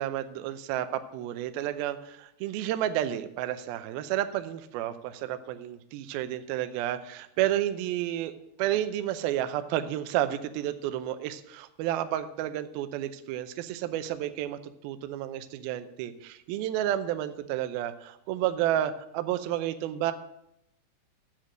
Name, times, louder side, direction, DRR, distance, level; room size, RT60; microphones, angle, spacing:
voice 1, 0.0-20.1, right 12 dB, 80° right, 10 dB, 2.2 m, -31 dB
10.0 x 7.4 x 6.3 m, 0.81 s
omnidirectional pair, 4.9 m